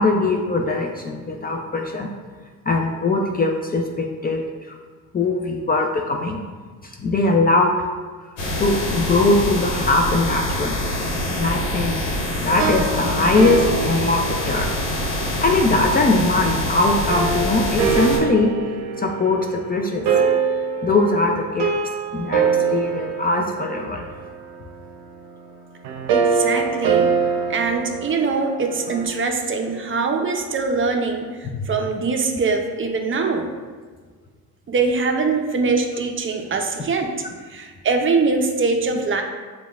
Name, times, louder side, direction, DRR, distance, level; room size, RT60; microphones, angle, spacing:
voice 1, 0.0-2.1 2.7-4.4 4.7-4.8 5.1-6.4 6.8-7.9 8.6-10.8 11.3-14.7 15.4-18.5 19.0-20.1 20.8-21.8 22.1-22.4 22.7-24.0 31.5-31.7, left 3 dB, 20° left, 1 dB, 0.4 m, -21 dB
sound 1, 8.4-18.2, left 1 dB, 75° left, 1.2 m, -25 dB
sound 2, 12.5-15.8 17.1-29.1, right 5 dB, 70° right, 0.7 m, -24 dB
voice 2, 26.1-27.1 27.5-33.5 34.7-37.1 37.5-39.2, right 4 dB, 30° right, 4 dB, 0.6 m, -22 dB
6.7 x 2.4 x 2.4 m, 1.4 s
supercardioid pair, 70°, 43 cm